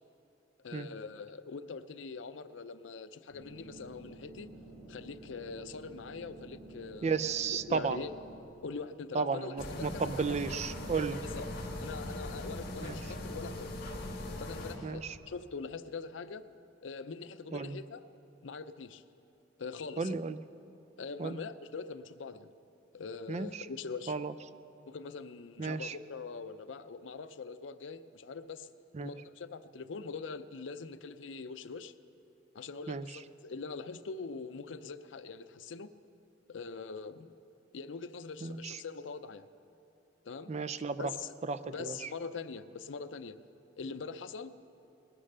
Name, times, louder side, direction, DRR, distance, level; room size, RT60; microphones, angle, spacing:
voice 1, 0.6-4.5 4.9-7.2 7.5-8.1 8.6-10.4 11.1-11.5 11.8-13.7 14.4-16.4 16.8-18.0 18.4-19.0 19.6-20.2 21.0-22.5 22.9-24.2 24.9-28.7 29.0-31.9 32.5-35.9 36.5-37.3 37.7-39.5 40.2-40.5 40.8-41.3 41.7-43.4 43.8-44.5, left 4 dB, 90° left, 12 dB, 0.6 m, -43 dB
sound 1, 3.3-8.4, right 2 dB, 85° right, 3.7 m, -51 dB
voice 2, 7.0-8.0 9.1-11.2 12.8-13.0 14.8-15.1 17.5-17.8 20.0-20.4 21.2-21.4 23.3-23.7 24.1-24.3 25.6-26.0 28.9-29.1 32.9-33.0 38.4-38.8 40.5-41.1 41.5-41.9, right 5 dB, 35° right, 11 dB, 0.4 m, -33 dB
sound 2, 9.6-14.8, left 1 dB, 55° left, 1.9 m, -40 dB
20.0 x 10.0 x 6.7 m, 2.8 s
head